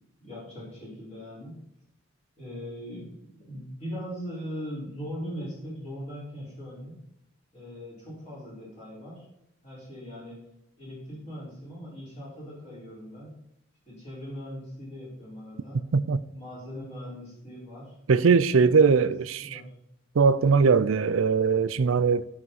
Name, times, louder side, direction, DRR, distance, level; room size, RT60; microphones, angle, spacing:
voice 1, 0.2-1.6 2.4-7.0 7.5-9.3 9.6-10.4 10.8-13.4 13.9-15.8 16.3-17.9 18.5-19.1 19.4-19.6, equal, 30° left, 4.9 m, -40 dB
voice 2, 18.1-19.6 20.2-22.3, right 5 dB, 80° right, 0.5 m, -21 dB
16.0 x 6.1 x 4.1 m
head